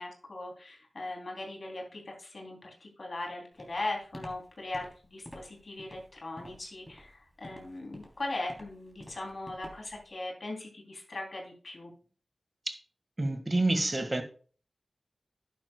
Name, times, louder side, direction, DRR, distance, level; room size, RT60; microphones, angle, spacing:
voice 1, 0.0-11.9, left 2 dB, 65° left, 3.1 m, -39 dB
Walk footsteps, 3.6-10.1, equal, 5° left, 3.2 m, -49 dB
voice 2, 13.2-14.2, right 2 dB, 35° right, 1.7 m, -28 dB
11.0 x 10.0 x 2.3 m
cardioid pair, 40°, 0 cm